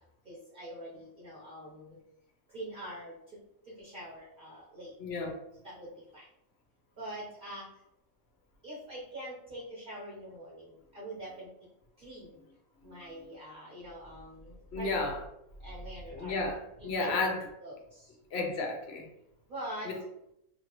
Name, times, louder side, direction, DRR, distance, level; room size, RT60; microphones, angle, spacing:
voice 1, 0.3-1.9 2.5-3.1 3.8-4.9 5.6-6.2 7.0-7.7 8.6-11.5 12.0-12.4 12.8-15.2 15.6-16.5 16.8-17.3 17.6-18.1 19.5-19.9, right 1 dB, 40° right, -6 dB, 0.8 m, -44 dB
voice 2, 5.0-5.3 14.7-15.2 16.1-17.5 18.3-19.1 19.9-20.0, left 3 dB, 60° left, 2 dB, 0.7 m, -32 dB
2.8 x 2.8 x 2.9 m, 0.81 s
omnidirectional pair, 1.6 m